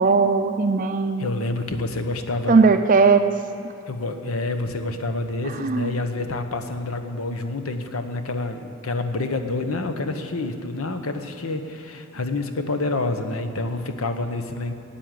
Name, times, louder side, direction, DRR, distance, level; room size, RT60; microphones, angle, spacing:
voice 1, 0.0-1.3 2.5-3.3 5.6-5.9, right 4 dB, 40° right, 7 dB, 0.4 m, -18 dB
voice 2, 1.2-2.7 3.9-14.7, left 2 dB, 85° left, 7 dB, 1.0 m, -28 dB
13.0 x 8.7 x 7.6 m, 3.0 s
head